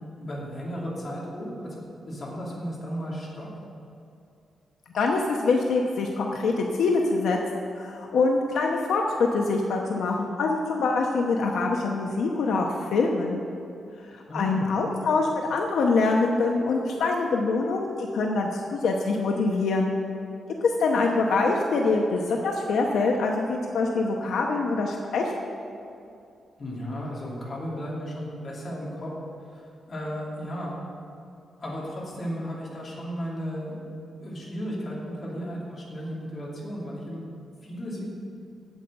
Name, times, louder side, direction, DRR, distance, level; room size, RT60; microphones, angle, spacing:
voice 1, 0.2-1.8 2.0-3.5 14.3-14.7 26.6-29.1 29.5-30.8 31.6-33.8 34.2-37.2 37.6-38.1, equal, 30° left, -5 dB, 2.7 m, -34 dB
voice 2, 4.9-13.4 14.3-19.9 20.6-25.4, left 3 dB, 75° left, 1 dB, 0.9 m, -24 dB
9.1 x 8.0 x 7.9 m, 2.6 s
wide cardioid pair, 175°, 0 cm